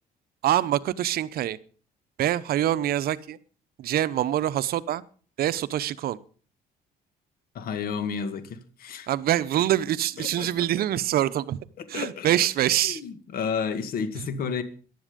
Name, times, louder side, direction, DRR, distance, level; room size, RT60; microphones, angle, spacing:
voice 1, 0.4-1.6 2.2-3.4 3.8-5.0 5.4-6.2 9.1-11.6 11.9-13.0, right 12 dB, 65° right, 16 dB, 0.8 m, -25 dB
voice 2, 7.5-9.1 10.2-10.8 11.8-12.5 12.8-14.6, left 6 dB, 60° left, 11 dB, 2.0 m, -32 dB
15.0 x 11.0 x 5.2 m, 0.41 s
cardioid pair, 110°, 17 cm